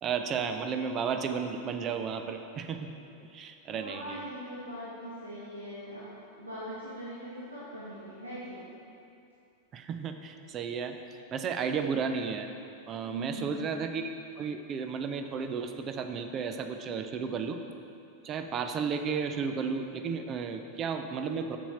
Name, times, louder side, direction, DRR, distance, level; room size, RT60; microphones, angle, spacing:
voice 1, 0.0-2.9 3.3-4.2 9.7-11.0 11.3-12.5 12.9-14.1 14.4-17.6 18.2-21.6, right 6 dB, 30° right, 7 dB, 0.5 m, -33 dB
voice 2, 3.7-6.1 6.4-8.7 13.0-13.7, right 1 dB, 85° right, -10 dB, 1.4 m, -41 dB
7.1 x 7.0 x 4.4 m, 2.6 s
figure-of-eight pair, 90°, 0 cm